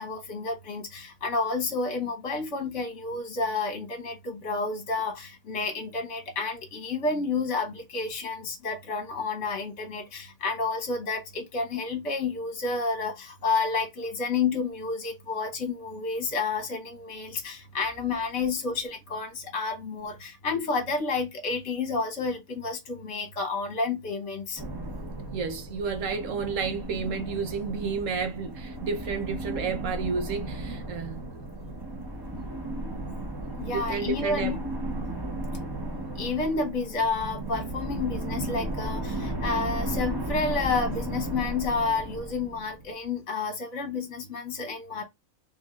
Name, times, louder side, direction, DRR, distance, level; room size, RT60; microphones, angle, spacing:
voice 1, 0.0-24.6 33.6-34.6 35.6-35.8 36.1-45.0, left 4 dB, 60° left, 1.2 m, -30 dB
sound 1, 24.6-43.0, right 1 dB, 20° right, 1.0 m, -35 dB
voice 2, 25.3-31.2 33.7-34.6 35.0-35.4, right 5 dB, 65° right, 1.3 m, -31 dB
3.4 x 3.2 x 3.7 m
omnidirectional pair, 1.5 m